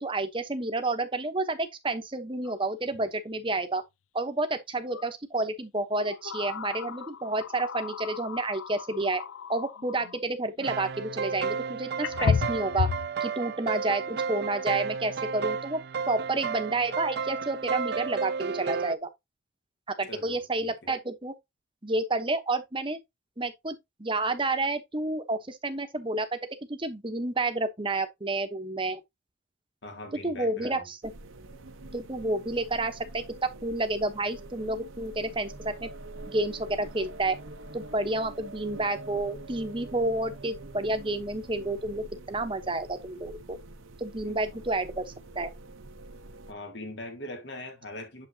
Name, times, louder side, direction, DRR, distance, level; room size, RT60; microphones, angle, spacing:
voice 1, 0.0-3.8 4.1-9.2 9.5-12.9 13.2-19.1 19.9-21.3 21.8-23.0 23.4-26.4 26.7-29.0 30.2-31.0 31.9-35.9 36.3-37.4 37.7-43.6 44.0-45.0 45.3-45.5, right 2 dB, 25° right, 1.0 m, -30 dB
sound 1, 2.4-2.5 2.9-3.1 4.9-5.1 5.9-10.2 11.4-11.5 12.0-13.1, left 6 dB, 80° left, 0.4 m, -33 dB
sound 2, 10.6-19.0, right 5 dB, 50° right, 0.4 m, -32 dB
voice 2, 20.1-20.7 29.8-30.9 44.2-44.6 46.5-48.3, left 1 dB, 60° left, 1.8 m, -42 dB
sound 3, 31.0-46.5, right 2 dB, 80° right, 1.0 m, -45 dB
7.8 x 5.6 x 2.8 m
head